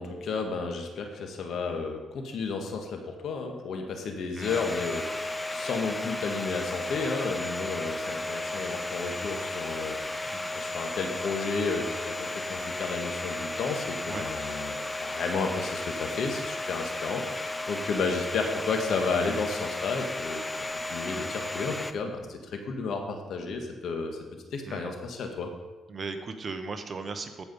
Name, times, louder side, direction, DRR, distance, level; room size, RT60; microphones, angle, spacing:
voice 1, 0.0-20.4 20.8-24.2 24.5-25.5, left 4 dB, 70° left, 3 dB, 1.5 m, -32 dB
Domestic sounds home sounds, 4.4-21.9, left 2 dB, 15° left, 0.6 m, -34 dB
voice 2, 25.9-27.5, right 4 dB, 40° right, 7 dB, 1.1 m, -37 dB
14.5 x 5.0 x 5.4 m, 1.2 s
cardioid pair, 90°, 0 cm